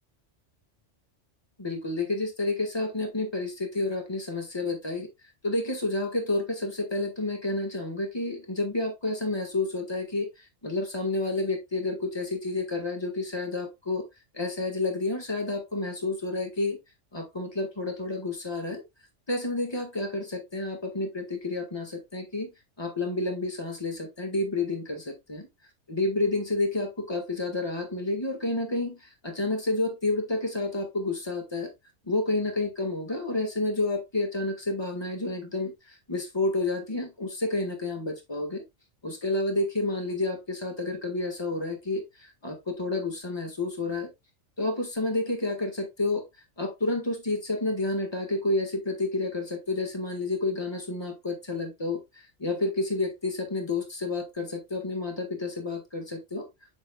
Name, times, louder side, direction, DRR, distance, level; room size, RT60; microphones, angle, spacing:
voice 1, 1.6-5.1 5.4-14.1 14.3-16.8 17.1-18.8 19.3-22.5 22.8-25.5 25.9-31.7 32.1-38.6 39.0-44.1 44.6-46.2 46.6-56.5, left 2 dB, 20° left, 1.7 m, -30 dB
7.2 x 6.2 x 2.3 m
omnidirectional pair, 1.3 m